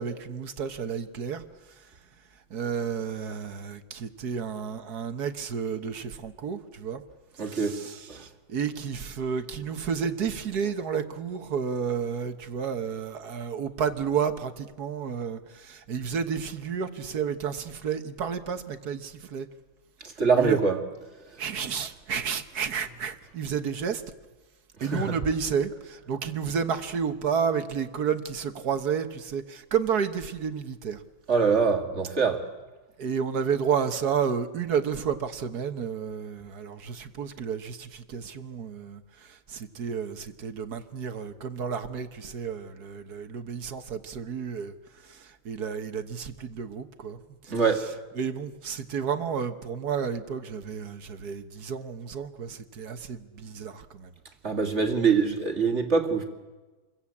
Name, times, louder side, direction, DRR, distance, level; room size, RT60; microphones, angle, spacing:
voice 1, 0.0-2.0 2.3-7.0 7.3-19.5 20.3-20.6 21.4-24.0 24.8-31.0 33.0-47.8 48.1-54.1, right 7 dB, 50° right, 9 dB, 1.6 m, -31 dB
voice 2, 7.4-7.8 8.1-8.2 20.2-20.8 24.9-25.1 31.3-32.4 47.5-47.9 54.4-56.2, right 5 dB, 30° right, 3 dB, 2.4 m, -24 dB
28.5 x 22.0 x 8.6 m, 1.2 s
omnidirectional pair, 2.4 m